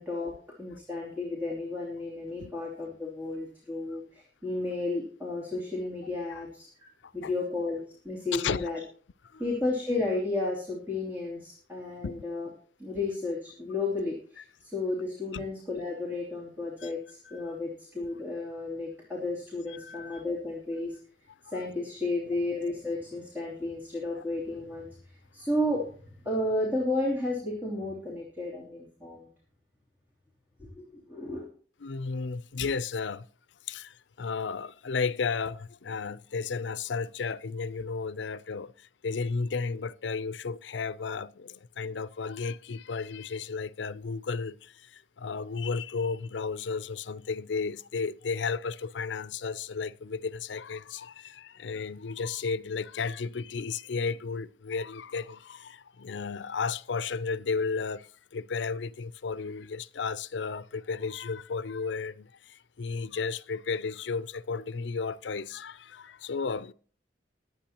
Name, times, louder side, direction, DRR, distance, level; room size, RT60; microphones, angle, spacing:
voice 1, 0.0-6.7 7.1-8.8 9.4-12.5 12.8-21.0 21.4-25.9 26.2-29.3 30.6-31.5, left 2 dB, 10° right, 3.1 m, -33 dB
voice 2, 8.3-8.7 9.3-9.4 12.0-12.2 15.3-15.5 16.8-16.9 17.3-17.5 19.7-20.2 21.4-21.7 24.2-24.3 31.8-33.2 33.7-66.7, left 5 dB, 75° left, 0.5 m, -34 dB
22.0 x 8.5 x 3.0 m
head